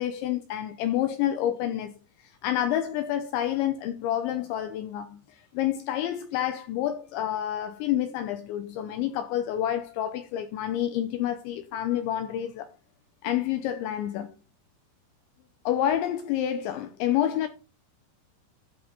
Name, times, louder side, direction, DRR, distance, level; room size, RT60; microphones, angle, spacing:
voice 1, 0.0-1.9 2.4-5.2 5.5-12.7 13.2-14.3 15.7-17.5, left 11 dB, 85° left, 2.7 m, -28 dB
12.0 x 5.7 x 3.9 m
omnidirectional pair, 5.9 m